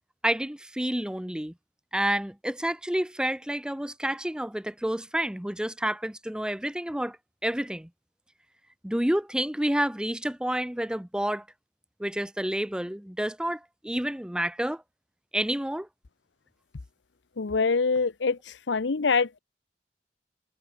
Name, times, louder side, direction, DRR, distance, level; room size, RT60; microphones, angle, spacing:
voice 1, 0.2-1.5 1.9-7.2 7.4-7.9 8.8-11.4 12.0-14.8 15.3-15.9, right 1 dB, 5° right, 0.7 m, -29 dB
voice 2, 17.4-19.4, left 4 dB, 85° left, 0.8 m, -25 dB
head